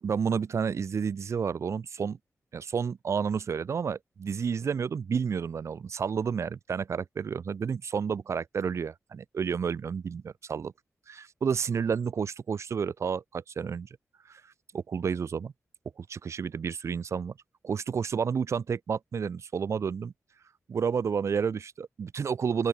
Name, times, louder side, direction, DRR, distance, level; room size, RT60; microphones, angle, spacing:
voice 1, 0.0-2.2 2.5-10.7 11.1-13.9 14.3-14.4 14.7-15.5 16.0-17.3 17.6-20.1 20.7-22.7, right 6 dB, 70° right, 2.2 m, -30 dB
open air
wide cardioid pair, 115°, 5 cm